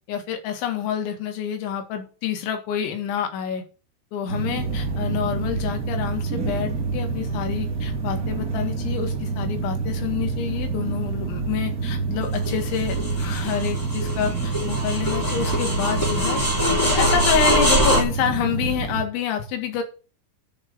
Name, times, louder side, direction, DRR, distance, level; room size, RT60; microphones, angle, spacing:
voice 1, 0.1-3.6 4.1-16.4 16.8-19.8, left 8 dB, 80° left, 5 dB, 4.2 m, -28 dB
sound 1, 4.3-19.0, right 4 dB, 85° right, 0.8 m, -27 dB
sound 2, 12.3-18.0, equal, 5° left, 2.1 m, -23 dB
10.5 x 6.0 x 7.2 m, 0.35 s
omnidirectional pair, 5.3 m